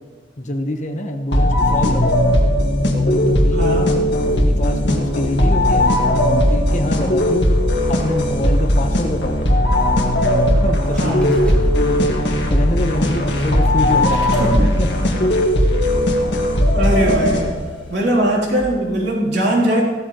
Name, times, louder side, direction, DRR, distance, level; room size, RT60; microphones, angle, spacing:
voice 1, 0.4-2.2 2.9-3.8 4.4-7.5 7.9-9.4 10.1-12.2 12.5-14.3 14.8-15.3, left 1 dB, 40° left, 5 dB, 1.1 m, -26 dB
sound 1, 1.3-17.8, left 1 dB, 70° left, 1.8 m, -17 dB
voice 2, 3.5-3.9 11.0-11.3 14.4-14.7 16.7-17.6 17.9-19.8, right 1 dB, 65° right, -3 dB, 3.6 m, -20 dB
sound 2, 4.6-4.7 4.9-7.7 8.2-8.6 9.5-9.6 10.4-10.5 11.0-18.6, equal, 5° left, 1.9 m, -34 dB
16.5 x 13.0 x 3.1 m, 1.4 s
head